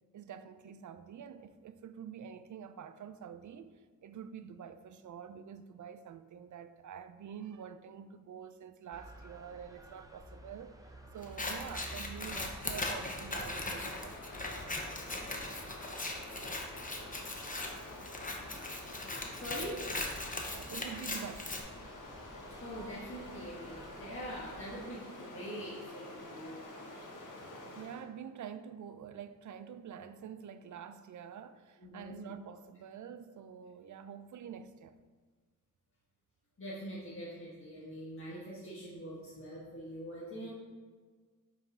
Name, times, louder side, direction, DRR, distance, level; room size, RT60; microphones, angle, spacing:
voice 1, 0.1-10.8 11.1-14.2 20.5-21.5 27.8-35.0, right 8 dB, 65° right, 0.5 m, -47 dB
sound 1, 8.9-24.9, right 1 dB, 10° right, 0.6 m, -54 dB
Scissors, 11.2-21.6, left 2 dB, 25° left, 0.9 m, -39 dB
Stream, 13.0-28.1, left 1 dB, 70° left, 1.2 m, -49 dB
voice 2, 19.3-20.0 22.6-26.6 31.8-32.3 36.6-40.5, equal, 40° left, 1.4 m, -43 dB
5.7 x 4.2 x 4.8 m
wide cardioid pair, 85°, 32 cm